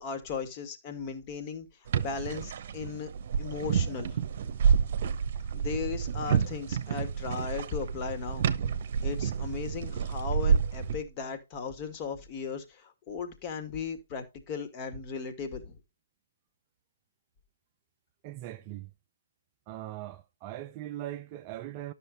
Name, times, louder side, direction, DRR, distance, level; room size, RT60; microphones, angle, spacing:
voice 1, 0.0-1.7 2.0-3.1 3.4-4.2 5.6-8.5 9.0-15.8, left 6 dB, 25° left, 2.1 m, -37 dB
sound 1, 1.9-11.0, right 7 dB, 45° right, 1.1 m, -29 dB
voice 2, 18.2-18.9 19.7-21.9, right 13 dB, 30° right, 0.7 m, -40 dB
12.5 x 6.8 x 4.1 m
figure-of-eight pair, 135°, 0 cm